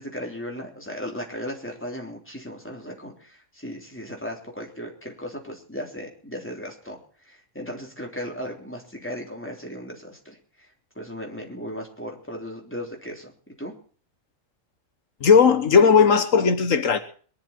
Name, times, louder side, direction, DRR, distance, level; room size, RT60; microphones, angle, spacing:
voice 1, 0.0-10.7 10.9-13.3 13.6-13.7, equal, 10° left, 3.4 m, -36 dB
voice 2, 15.2-17.0, left 6 dB, 80° left, 1.5 m, -16 dB
22.0 x 11.5 x 4.4 m
omnidirectional pair, 1.3 m